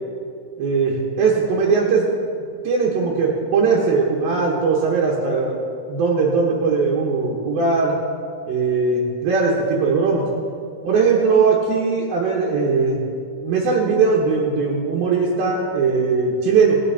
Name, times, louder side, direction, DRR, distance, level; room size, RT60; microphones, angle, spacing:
voice 1, 0.6-2.1 2.6-5.6 5.9-8.0 8.5-10.3 10.8-13.0 13.4-16.8, right 4 dB, 75° right, -3 dB, 3.0 m, -19 dB
18.0 x 9.4 x 4.2 m, 2.4 s
omnidirectional pair, 4.5 m